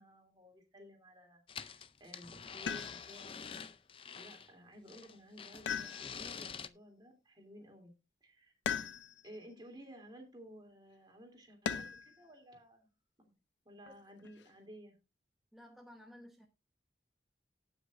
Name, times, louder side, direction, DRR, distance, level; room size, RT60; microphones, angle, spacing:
voice 1, 0.0-3.4 4.2-7.9 8.2-8.6 9.2-12.9 13.2-13.3 13.6-14.9, equal, 25° right, 3 dB, 3.0 m, -55 dB
sound 1, 1.5-4.5 4.9-6.7, left 6 dB, 30° left, 0.5 m, -47 dB
sound 2, 2.7-3.3 5.7-6.5 8.7-9.4 11.7-12.2 13.9-14.5, left 7 dB, 85° left, 0.5 m, -39 dB
voice 2, 15.5-16.5, left 1 dB, ahead, 2 dB, 0.9 m, -55 dB
18.5 x 6.3 x 2.5 m, 0.28 s
head